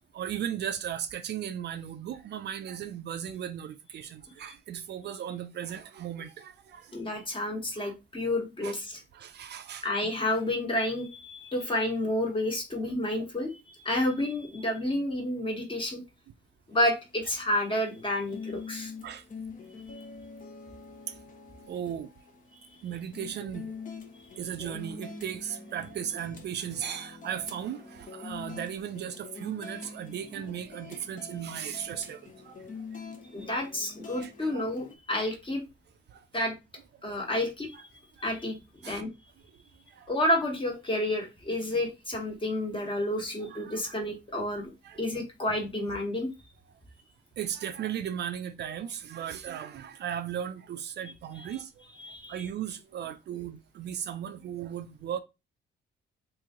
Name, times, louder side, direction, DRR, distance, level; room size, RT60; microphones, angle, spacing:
voice 1, 0.1-7.1 7.8-7.9 8.6-8.8 9.1-9.9 13.2-13.3 19.0-19.2 21.1-21.2 21.7-22.1 22.8-23.8 24.4-33.0 34.1-34.6 36.1-36.2 37.0-37.2 38.2-38.3 38.8-39.0 39.9-40.1 43.5-44.0 44.8-45.0 47.4-51.9 52.3-55.2, right 9 dB, 60° right, 0.4 m, -37 dB
voice 2, 6.9-9.0 9.8-16.0 16.7-18.9 33.3-35.6 36.3-36.5 37.0-37.7 38.2-38.6 38.8-39.1 40.1-44.7 45.0-46.3 52.0-52.3, left 1 dB, 25° left, 1.3 m, -30 dB
sound 1, 16.8-35.0, left 4 dB, 40° left, 0.8 m, -45 dB
3.0 x 2.7 x 3.6 m
cardioid pair, 90°, 20 cm